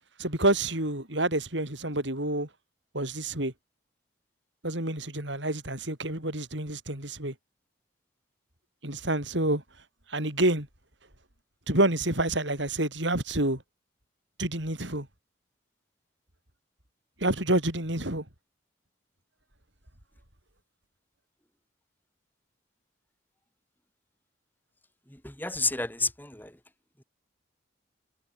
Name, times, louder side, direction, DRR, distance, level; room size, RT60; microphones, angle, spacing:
voice 1, 0.2-2.5 2.9-3.5 4.6-7.3 8.8-9.6 10.1-10.7 11.7-13.6 14.4-15.1 17.2-18.2, right 1 dB, 75° right, 7.6 m, -28 dB
voice 2, 25.1-26.5, left 3 dB, 10° left, 2.9 m, -31 dB
head